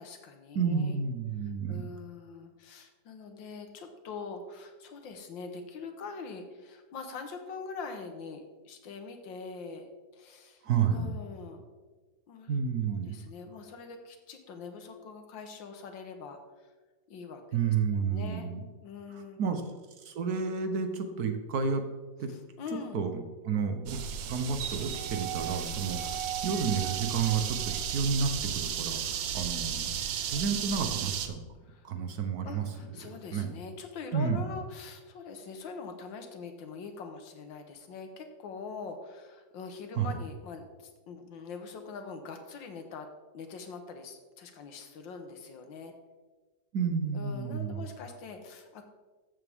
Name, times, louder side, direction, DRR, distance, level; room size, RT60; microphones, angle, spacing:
voice 1, 0.0-1.0 1.4-9.9 10.1-11.6 12.3-12.6 12.9-16.7 17.1-18.5 18.8-19.7 22.3-23.0 29.0-29.1 31.7-31.9 32.5-43.1 43.3-45.9 47.1-48.8, left 5 dB, 80° left, 6 dB, 1.8 m, -43 dB
voice 2, 0.5-1.8 10.6-11.1 12.5-13.2 17.5-18.6 19.1-19.6 20.0-21.8 22.2-22.3 22.9-24.0 24.3-29.9 30.2-31.4 31.8-32.7 33.1-33.5 34.1-34.5 40.0-40.1 46.7-47.9, right 6 dB, 60° right, 6 dB, 1.4 m, -31 dB
sound 1, 23.9-31.3, right 9 dB, 85° right, 1.5 m, -34 dB
13.5 x 7.3 x 3.6 m, 1.3 s
omnidirectional pair, 2.0 m